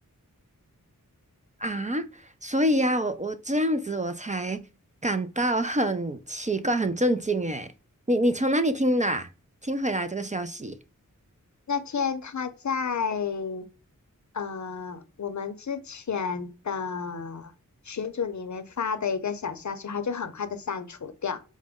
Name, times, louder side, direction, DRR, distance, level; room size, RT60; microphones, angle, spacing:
voice 1, 1.6-4.6 5.0-7.7 8.1-9.3 9.6-10.8, right 1 dB, 20° right, 0.4 m, -26 dB
voice 2, 11.7-13.7 14.3-17.5 17.8-21.4, left 6 dB, 55° left, 0.6 m, -31 dB
4.9 x 2.1 x 3.5 m
wide cardioid pair, 60°, 33 cm